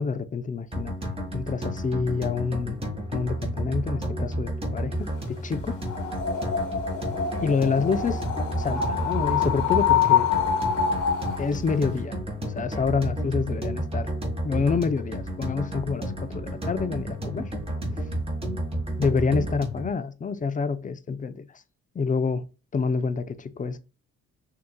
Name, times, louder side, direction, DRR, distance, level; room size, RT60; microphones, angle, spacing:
voice 1, 0.0-2.8 3.1-5.8 7.4-8.2 8.6-10.3 11.4-14.1 14.4-17.5 19.0-21.5 21.9-22.4 22.7-23.8, left 5 dB, 25° left, 0.6 m, -27 dB
sound 1, 0.7-19.9, right 1 dB, 20° right, 1.7 m, -31 dB
sound 2, 5.8-11.6, left 8 dB, 90° left, 1.6 m, -25 dB
6.1 x 2.9 x 2.3 m
cardioid pair, 90°, 30 cm